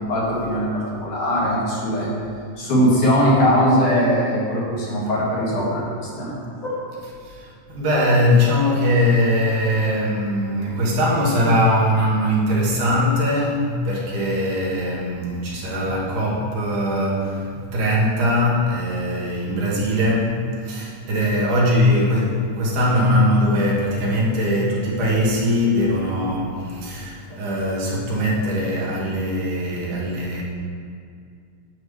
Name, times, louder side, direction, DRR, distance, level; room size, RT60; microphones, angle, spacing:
voice 1, 0.1-2.1 2.6-6.3 6.6-6.8, equal, 75° left, -7 dB, 3.5 m, -20 dB
voice 2, 7.2-30.4, left 1 dB, 85° right, -5 dB, 3.0 m, -21 dB
9.4 x 7.9 x 3.2 m, 2.3 s
omnidirectional pair, 3.5 m